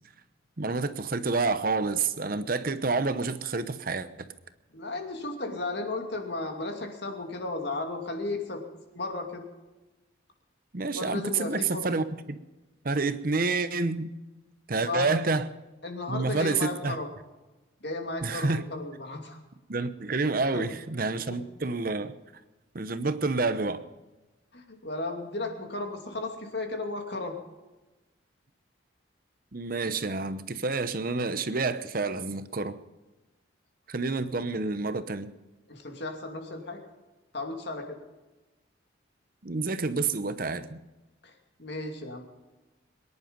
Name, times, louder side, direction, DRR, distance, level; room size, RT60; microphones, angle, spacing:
voice 1, 0.6-4.1 10.7-12.4 12.8-14.1 14.7-15.4 16.1-17.0 18.2-18.6 19.7-22.1 22.7-23.8 29.5-32.8 33.9-35.3 39.4-40.8, right 3 dB, 45° right, 12 dB, 0.8 m, -28 dB
voice 2, 4.7-8.6 8.9-9.4 10.9-11.9 14.8-15.1 15.8-17.1 17.8-19.4 20.5-20.6 21.3-21.4 24.5-27.4 35.7-36.8 37.3-38.0 41.2-41.3 41.6-42.2, left 2 dB, 55° left, 4 dB, 2.6 m, -34 dB
23.0 x 10.5 x 5.4 m, 1.1 s
head